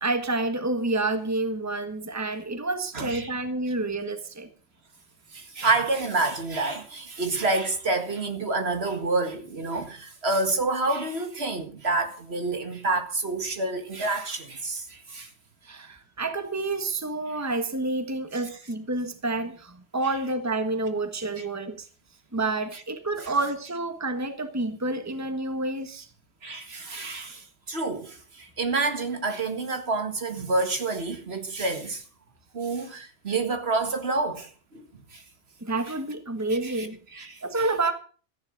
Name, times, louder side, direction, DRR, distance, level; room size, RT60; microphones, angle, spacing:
voice 1, 0.0-4.5 15.6-21.9 22.3-26.1 35.6-37.0 37.4-37.9, right 2 dB, 15° right, 1.4 m, -29 dB
voice 2, 2.9-3.3 5.3-15.3 21.4-21.5 23.2-23.3 26.4-32.0 32.5-34.5 35.1-35.2 36.6-36.9 37.1-37.7, right 3 dB, 60° right, 2.1 m, -28 dB
14.0 x 11.0 x 6.4 m
omnidirectional pair, 1.2 m